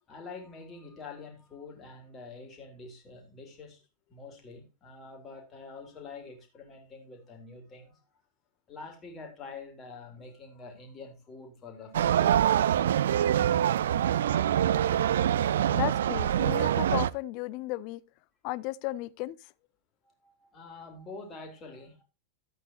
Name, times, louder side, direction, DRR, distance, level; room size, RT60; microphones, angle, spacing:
voice 1, 0.1-3.8 4.1-8.0 8.7-12.9 20.0-22.0, left 4 dB, 25° left, 3.4 m, -46 dB
sound 1, 11.9-17.1, right 10 dB, 60° right, 0.4 m, -25 dB
voice 2, 15.7-18.0 18.4-19.4, left 18 dB, 45° left, 0.5 m, -34 dB
12.5 x 8.9 x 3.0 m
figure-of-eight pair, 90°, 0 cm